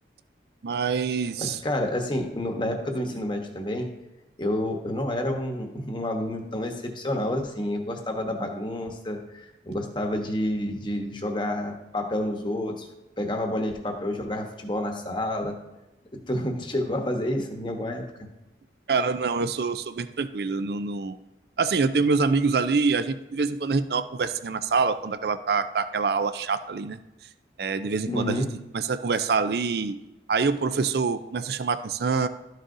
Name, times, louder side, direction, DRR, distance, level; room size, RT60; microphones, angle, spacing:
voice 1, 0.6-1.6 18.9-21.2 21.6-27.0 27.6-28.4 28.7-30.0 30.3-32.3, right 4 dB, 60° right, 12 dB, 0.4 m, -25 dB
voice 2, 1.4-3.9 4.4-12.9 13.2-15.6 16.3-18.0 28.1-28.5, left 1 dB, 25° left, 3 dB, 1.0 m, -29 dB
12.5 x 6.3 x 2.6 m, 0.97 s
head